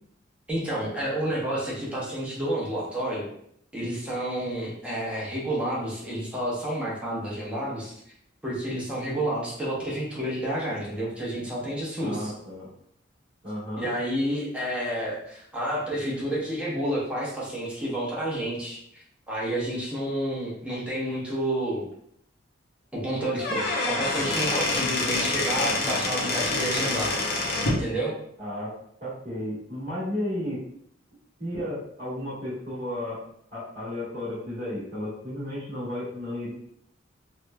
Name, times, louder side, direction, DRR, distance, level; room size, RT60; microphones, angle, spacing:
voice 1, 0.5-3.3 3.7-7.9 8.4-12.3 13.8-21.8 22.9-27.1 27.6-28.1, right 1 dB, 5° right, -6 dB, 0.7 m, -30 dB
voice 2, 12.0-12.7 13.4-13.9 28.4-28.7 29.0-30.6 31.4-33.2 33.5-36.5, left 1 dB, 40° right, -11 dB, 1.1 m, -33 dB
Squeak / Wood, 23.3-27.8, left 2 dB, 55° left, 0.6 m, -27 dB
2.9 x 2.1 x 2.2 m, 0.69 s
head